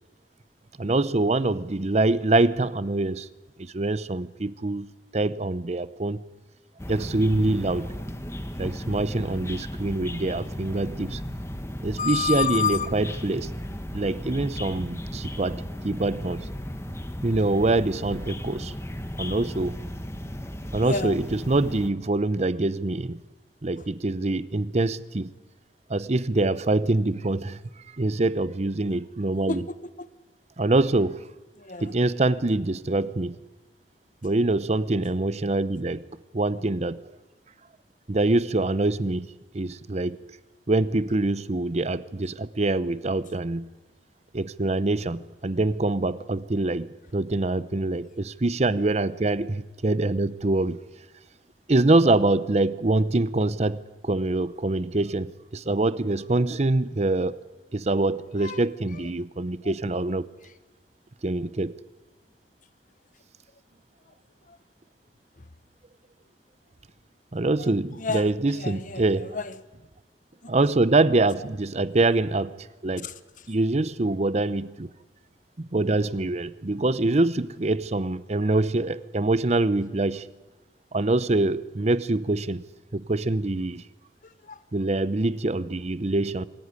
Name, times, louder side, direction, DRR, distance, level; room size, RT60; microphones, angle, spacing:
voice 1, 0.8-3.3 3.6-4.9 5.1-6.2 6.9-7.9 8.6-11.2 11.8-13.5 13.9-16.5 17.2-18.7 19.2-19.8 20.7-23.2 23.6-25.3 25.9-27.6 27.9-29.6 30.6-31.3 31.8-33.3 34.2-36.1 36.3-37.0 38.1-39.3 39.5-40.2 40.7-43.7 44.3-50.8 51.7-57.4 57.7-60.3 61.2-61.8 67.3-69.4 70.5-73.1 73.5-74.9 75.6-80.3 80.9-82.6 82.9-83.8 84.7-86.5, right 2 dB, 40° right, 0.7 m, -25 dB
sound 1, 6.8-21.9, equal, 15° left, 1.5 m, -35 dB
voice 2, 12.0-12.9 20.8-21.2 23.8-23.9 29.5-30.1 31.6-31.9 58.4-58.6 58.9-59.0 59.6-59.7 64.5-64.6 65.4-65.5 67.6-67.7 68.0-69.6 70.4-70.5 73.0-73.5 84.2-84.6, left 6 dB, 45° left, 1.1 m, -31 dB
26.0 x 15.5 x 9.8 m
head